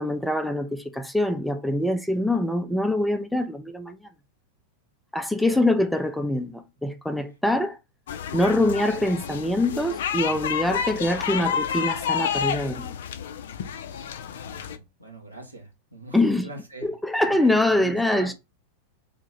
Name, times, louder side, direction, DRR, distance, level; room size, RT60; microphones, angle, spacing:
voice 1, 0.0-4.0 5.1-7.8 8.3-12.9 16.1-16.5 16.8-18.3, left 1 dB, ahead, 0.5 m, -24 dB
voice 2, 5.4-5.7 14.3-16.9 17.3-18.3, right 1 dB, 90° right, 1.3 m, -42 dB
sound 1, 8.1-14.8, left 8 dB, 60° left, 0.4 m, -30 dB
3.7 x 2.8 x 4.0 m
figure-of-eight pair, 90°, 0 cm